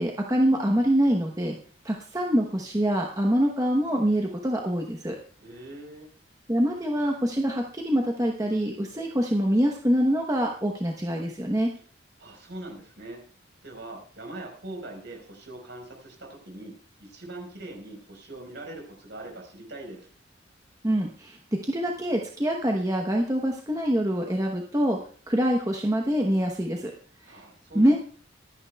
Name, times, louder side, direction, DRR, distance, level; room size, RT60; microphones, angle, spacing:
voice 1, 0.0-1.5 1.8-5.2 6.5-11.7 20.8-25.0 25.3-26.9 27.3-27.4 27.7-28.0, equal, 15° right, 1 dB, 0.9 m, -25 dB
voice 2, 5.4-6.1 12.2-13.2 13.6-16.7 17.0-20.1 27.2-28.0, right 2 dB, 65° right, 1 dB, 4.3 m, -42 dB
24.5 x 9.6 x 2.3 m, 0.42 s
head